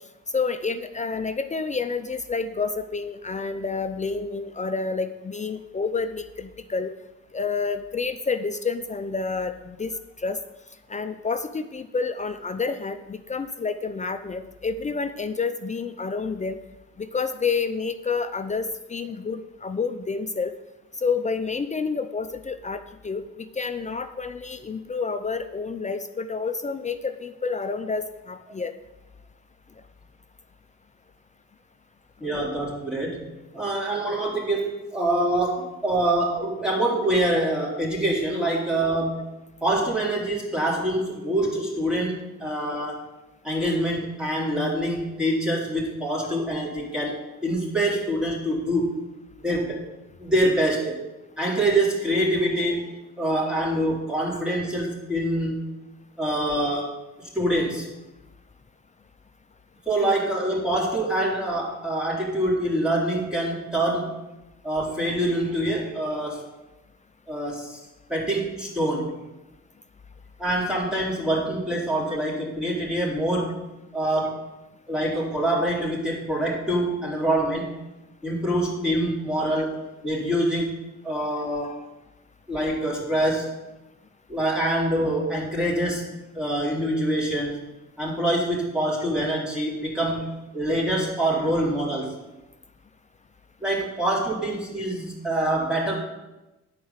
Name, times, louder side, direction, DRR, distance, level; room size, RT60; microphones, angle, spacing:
voice 1, 0.3-6.9 7.3-9.9 10.2-10.4 10.9-16.6 17.0-20.5 21.0-28.7 32.2-32.4 60.0-60.1, left 4 dB, 25° left, 9 dB, 0.6 m, -29 dB
voice 2, 32.2-39.2 39.6-43.1 43.4-48.9 49.4-49.8 50.2-51.0 51.4-52.8 53.2-55.6 56.2-57.9 59.9-64.2 64.6-66.5 67.3-67.8 68.1-69.1 70.4-73.6 73.9-74.5 74.9-77.7 78.2-81.9 82.5-83.6 84.3-86.1 86.3-87.5 88.0-92.2 93.6-95.9, right 1 dB, 5° right, -5 dB, 3.9 m, -25 dB
10.0 x 4.8 x 7.4 m, 0.99 s
cardioid pair, 90°, 30 cm